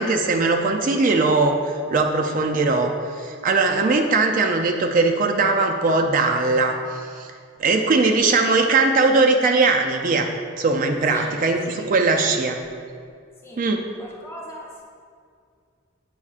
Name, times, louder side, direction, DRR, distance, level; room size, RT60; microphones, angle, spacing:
voice 1, 0.0-7.3 7.6-10.3 10.6-12.6 13.6-13.8, right 3 dB, 40° right, 4 dB, 0.4 m, -20 dB
voice 2, 14.0-14.8, equal, 15° left, -3 dB, 0.8 m, -40 dB
8.3 x 6.2 x 2.4 m, 2.2 s
head